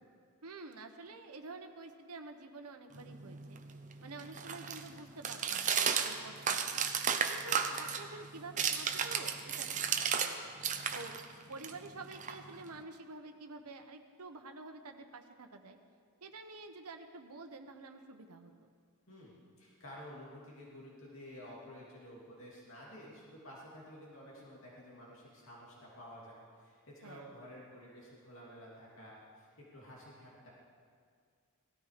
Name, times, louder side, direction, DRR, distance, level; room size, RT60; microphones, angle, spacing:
voice 1, 0.4-3.6 4.0-6.8 7.3-10.4 10.9-11.2 11.5-15.8 16.2-18.7 27.0-27.4, right 3 dB, 85° right, 5 dB, 1.0 m, -49 dB
sound 1, 2.9-10.3 10.6-12.8, right 7 dB, 35° right, 0.8 m, -34 dB
voice 2, 19.1-30.5, equal, 60° left, -5 dB, 2.9 m, -52 dB
17.5 x 13.5 x 5.1 m, 2.1 s
head